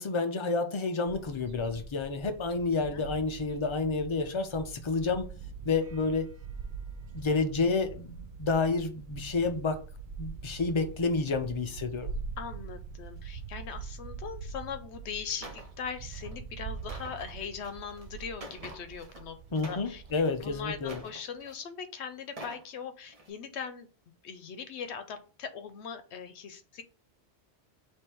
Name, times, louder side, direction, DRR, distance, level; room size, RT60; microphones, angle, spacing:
voice 1, 0.0-5.3 5.6-6.3 7.1-9.8 10.2-12.1 19.5-21.0, left 3 dB, 40° left, 0.5 m, -29 dB
sound 1, 1.1-21.0, right 5 dB, 55° right, 0.6 m, -44 dB
voice 2, 12.4-19.4 19.7-20.0 20.4-23.9 24.2-26.8, left 6 dB, 80° left, 0.9 m, -40 dB
sound 2, 15.4-15.7 16.1-16.3 16.7-19.2 19.5-20.3 20.8-21.7 22.2-22.6 23.1-23.3, right 1 dB, 35° right, 0.9 m, -47 dB
3.5 x 3.2 x 4.4 m
omnidirectional pair, 1.1 m